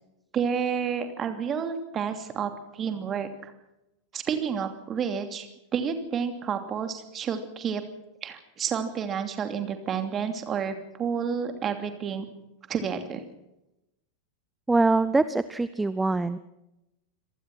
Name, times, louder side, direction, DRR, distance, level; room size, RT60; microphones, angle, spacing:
voice 1, 0.3-3.5 4.1-7.8 8.2-12.3 12.7-13.2, right 7 dB, 25° right, 7 dB, 2.8 m, -30 dB
voice 2, 14.7-16.4, right 3 dB, 10° right, 15 dB, 0.7 m, -23 dB
27.0 x 19.0 x 6.1 m, 0.92 s
figure-of-eight pair, 90°, 0 cm